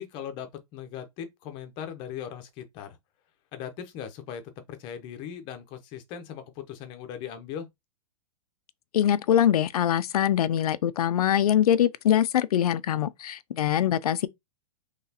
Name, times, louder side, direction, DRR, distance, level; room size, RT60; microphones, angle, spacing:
voice 1, 0.0-3.0 3.5-4.4 4.7-7.7, left 9 dB, 25° left, 0.7 m, -39 dB
voice 2, 8.9-14.3, left 10 dB, 90° left, 0.5 m, -23 dB
4.0 x 3.0 x 2.8 m
hypercardioid pair, 160°, 19 cm